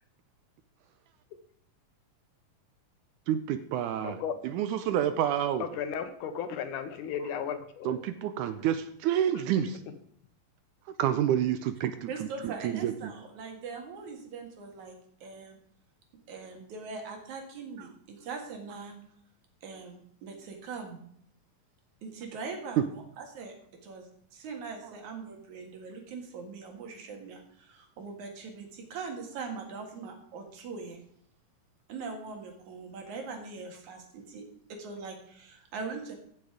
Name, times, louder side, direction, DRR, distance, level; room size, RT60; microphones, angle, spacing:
voice 1, 3.3-4.2 4.4-5.7 7.9-9.8 11.0-12.1 12.4-12.9 18.9-19.0, right 10 dB, 80° right, 11 dB, 2.0 m, -28 dB
voice 2, 4.0-4.4 5.6-8.0, left 7 dB, 75° left, 10 dB, 2.3 m, -35 dB
voice 3, 12.1-14.9 15.2-15.6 16.3-18.9 19.6-21.0 22.0-23.5 23.8-31.0 31.9-34.4 34.7-36.2, right 4 dB, 65° right, 3 dB, 3.1 m, -41 dB
15.0 x 6.7 x 5.0 m, 0.67 s
omnidirectional pair, 3.8 m